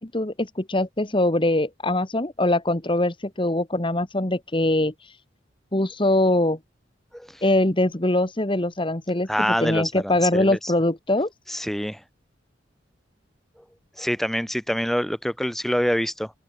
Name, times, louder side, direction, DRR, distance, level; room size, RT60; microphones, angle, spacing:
voice 1, 0.0-4.9 5.7-6.6 7.4-9.3 9.6-11.3, left 1 dB, 25° left, 1.7 m, -22 dB
voice 2, 7.1-7.4 9.3-10.7 11.5-12.0 14.0-16.3, equal, ahead, 3.3 m, -26 dB
open air
head